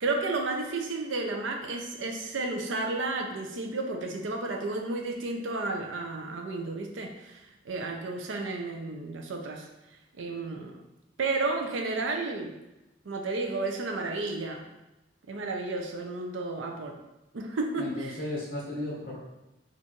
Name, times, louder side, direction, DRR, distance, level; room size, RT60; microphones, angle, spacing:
voice 1, 0.0-9.7 10.2-10.8 11.2-12.5 13.0-14.7 15.3-17.0 17.3-18.2, right 3 dB, 85° right, 2 dB, 0.5 m, -32 dB
voice 2, 17.8-19.2, left 1 dB, 50° left, -4 dB, 1.0 m, -35 dB
4.3 x 2.5 x 3.0 m, 0.96 s
head